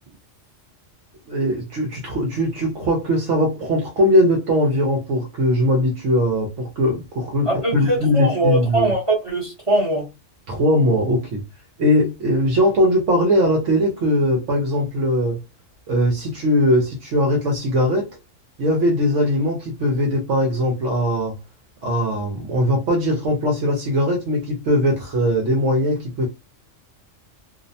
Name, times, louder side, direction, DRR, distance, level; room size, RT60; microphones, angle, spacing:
voice 1, 1.3-8.9 10.5-11.4 11.8-15.4 15.9-18.2 18.6-21.4 21.8-26.3, equal, 70° right, 1.0 m, -20 dB
voice 2, 7.4-10.1, right 1 dB, 30° right, 0.8 m, -21 dB
2.7 x 2.0 x 2.6 m
omnidirectional pair, 1.3 m